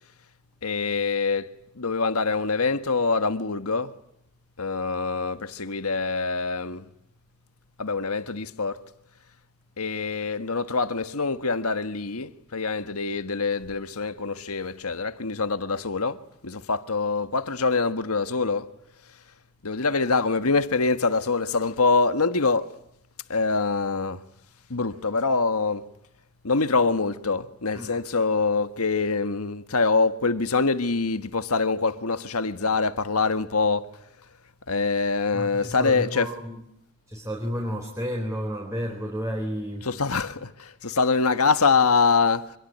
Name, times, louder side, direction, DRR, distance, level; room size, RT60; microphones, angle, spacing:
voice 1, 0.6-3.9 4.6-6.9 7.8-8.8 9.8-16.2 16.4-18.7 19.6-22.7 23.3-24.2 24.7-25.8 26.4-33.9 34.7-36.3 39.8-42.5, left 4 dB, 90° left, 1.5 m, -24 dB
voice 2, 27.7-28.1 35.3-36.6 37.1-39.9, equal, 15° right, 4.2 m, -31 dB
26.0 x 22.5 x 9.4 m
head